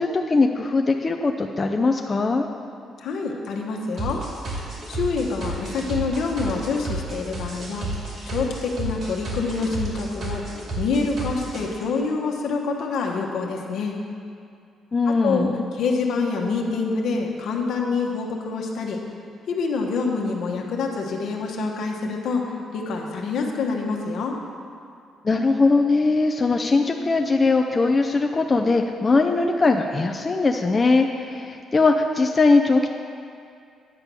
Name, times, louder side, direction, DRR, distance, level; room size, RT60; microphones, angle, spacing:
voice 1, 0.0-2.5 14.9-15.6 25.2-32.9, left 3 dB, 30° left, 3 dB, 0.5 m, -20 dB
voice 2, 3.0-4.2 4.9-7.9 8.2-10.4 10.7-13.9 15.1-15.5 15.7-19.0 19.5-22.4 22.7-24.3, left 4 dB, 75° left, 0 dB, 1.1 m, -26 dB
sound 1, 4.0-11.6, right 2 dB, 60° right, 2.6 m, -31 dB
9.8 x 4.7 x 6.8 m, 2.4 s
cardioid pair, 90°, 0 cm